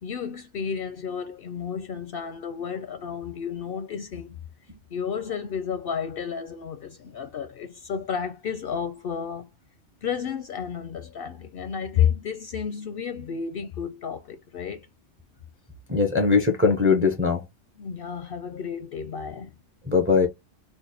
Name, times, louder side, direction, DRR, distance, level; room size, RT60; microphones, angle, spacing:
voice 1, 0.0-4.4 4.9-9.5 10.0-14.9 17.8-19.5, left 7 dB, 60° left, 0.6 m, -31 dB
voice 2, 15.9-17.4 19.8-20.3, left 4 dB, 15° right, 0.4 m, -20 dB
3.2 x 2.2 x 4.1 m
omnidirectional pair, 1.3 m